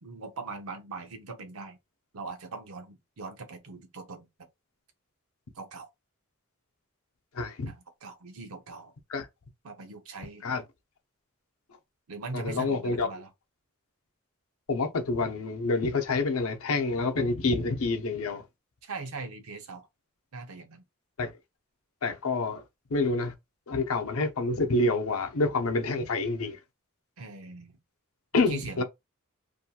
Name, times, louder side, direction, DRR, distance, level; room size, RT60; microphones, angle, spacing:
voice 1, 0.0-1.8 2.1-4.3 5.6-5.9 7.7-8.9 9.6-10.4 12.1-13.3 18.8-19.9 20.3-20.8 27.2-27.8 28.3-28.8, right 3 dB, 75° right, 0.7 m, -41 dB
voice 2, 7.3-7.7 9.1-9.3 10.4-10.6 12.3-13.1 14.7-18.4 21.2-21.3 22.0-22.6 22.9-23.3 23.7-26.6 28.3-28.8, left 3 dB, 75° left, 0.6 m, -27 dB
2.6 x 2.3 x 2.8 m
head